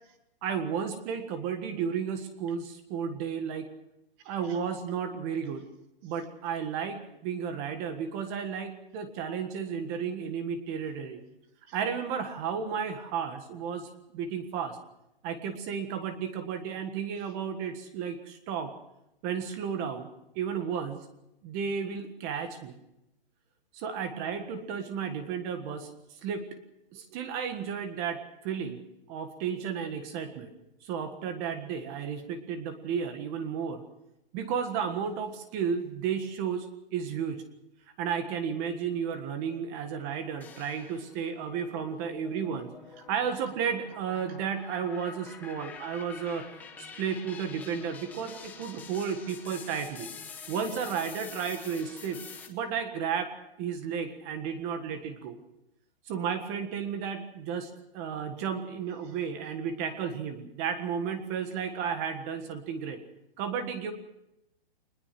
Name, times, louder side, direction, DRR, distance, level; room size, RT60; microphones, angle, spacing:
voice 1, 0.4-3.7 4.2-5.6 6.0-11.2 11.7-14.8 15.2-18.7 19.2-20.1 20.3-21.1 21.4-22.7 23.7-25.9 26.2-26.4 26.9-28.8 29.1-30.5 30.8-33.8 34.3-36.7 36.9-37.4 38.0-46.4 47.0-50.1 50.5-52.2 52.5-55.4 56.1-63.0 63.4-63.9, right 7 dB, 20° right, 9 dB, 1.6 m, -33 dB
sound 1, 40.4-41.3 41.7-52.5, left 6 dB, 5° left, 1.1 m, -47 dB
24.0 x 20.5 x 6.0 m, 0.86 s
hypercardioid pair, 170°, 30 cm